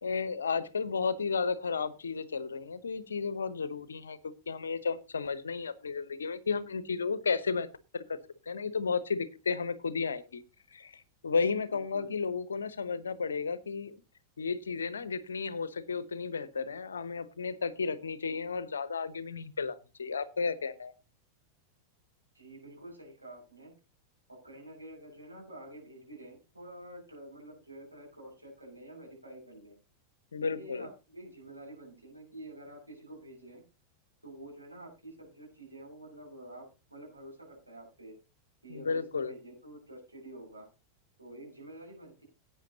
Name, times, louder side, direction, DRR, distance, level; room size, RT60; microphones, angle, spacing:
voice 1, 0.0-7.7 7.9-8.2 8.4-10.4 10.7-13.9 14.4-20.9 30.3-30.9 38.7-39.3, left 5 dB, 70° left, 16 dB, 1.0 m, -33 dB
voice 2, 11.7-12.1 22.3-23.7 24.3-29.8 30.4-33.6 34.2-38.1 38.6-40.7 41.2-42.2, right 1 dB, 85° right, -1 dB, 6.1 m, -48 dB
17.5 x 8.9 x 2.8 m, 0.29 s
figure-of-eight pair, 90°, 0 cm